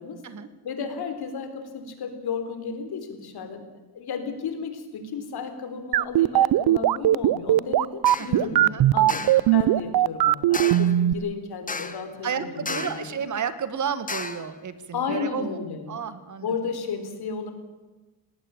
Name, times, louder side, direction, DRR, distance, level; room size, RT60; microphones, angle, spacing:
voice 1, 0.6-3.6 3.9-13.1 14.9-15.9 16.4-17.5, left 5 dB, 70° left, 8 dB, 3.9 m, -33 dB
sound 1, 5.9-11.1, right 13 dB, 65° right, 0.6 m, -19 dB
sound 2, 8.1-8.4 9.1-9.5 10.5-11.0 11.7-12.1 12.7-13.1 14.1-14.5, left 4 dB, 20° left, 1.2 m, -33 dB
voice 2, 8.2-9.1 9.5-9.6 12.2-15.6 15.9-16.5, right 7 dB, 45° right, 13 dB, 1.6 m, -32 dB
19.5 x 18.0 x 8.8 m, 1.2 s
wide cardioid pair, 145°, 40 cm